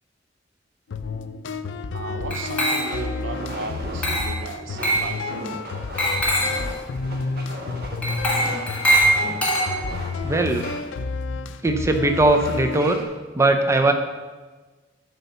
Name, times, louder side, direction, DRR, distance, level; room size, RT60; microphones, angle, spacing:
sound 1, 0.9-12.9, left 4 dB, 75° left, 0.4 m, -31 dB
sound 2, 1.5-13.0, right 1 dB, 55° right, 1.2 m, -38 dB
voice 1, 1.9-5.6, right 3 dB, 90° right, 9 dB, 0.7 m, -35 dB
Glass, 2.3-3.2 4.0-4.4 4.8-5.1 6.0-6.6 8.0-10.1, right 1 dB, 10° left, 1.7 m, -22 dB
voice 2, 10.2-10.7 11.6-13.0 13.3-13.9, right 2 dB, 15° right, 6 dB, 0.5 m, -19 dB
8.5 x 4.0 x 6.7 m, 1.3 s
head